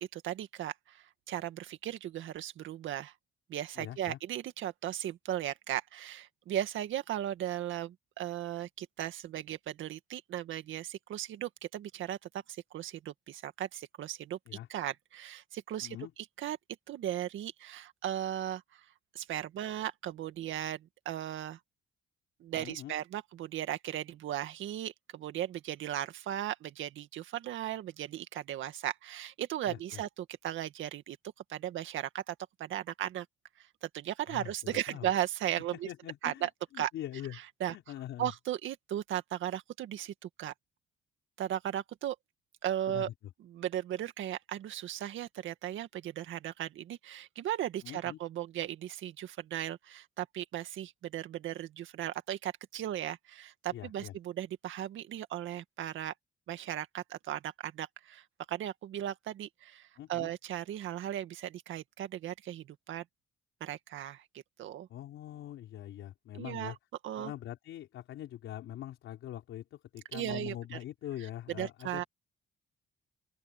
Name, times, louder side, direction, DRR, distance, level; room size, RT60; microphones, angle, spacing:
voice 1, 0.0-3.1 3.5-12.2 12.5-14.4 14.7-16.0 16.4-16.6 16.9-18.8 19.1-21.6 22.4-31.2 31.5-33.3 33.8-35.9 36.2-36.5 36.8-36.9 37.3-37.7 38.2-40.5 41.4-42.2 42.6-43.1 43.4-56.1 56.5-63.0 63.6-64.2 64.6-64.9 66.3-66.7 67.0-67.3 70.1-70.8 71.5-72.0, right 12 dB, 80° right, 2.0 m, -37 dB
voice 2, 3.8-4.2 14.5-14.7 15.8-16.1 22.5-22.9 29.7-30.0 34.3-35.1 35.7-37.4 37.7-38.3 42.9-43.1 47.8-48.2 53.7-54.1 60.0-60.3 64.9-66.8 67.2-72.1, left 12 dB, 80° left, 4.7 m, -43 dB
open air
cardioid pair, 90°, 20 cm